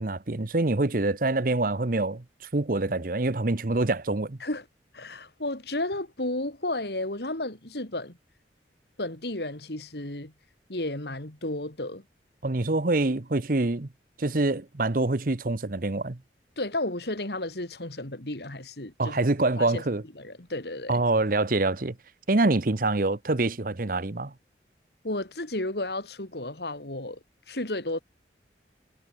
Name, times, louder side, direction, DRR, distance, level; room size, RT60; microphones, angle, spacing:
voice 1, 0.0-2.2 2.5-4.4 12.4-13.9 14.2-16.2 19.0-20.0 20.9-21.9 22.3-24.3, right 2 dB, 50° right, 1.0 m, -25 dB
voice 2, 4.9-8.2 9.0-10.3 10.7-12.0 16.6-19.2 19.6-19.8 20.1-21.0 25.0-27.2 27.5-28.0, left 2 dB, 65° left, 3.2 m, -33 dB
head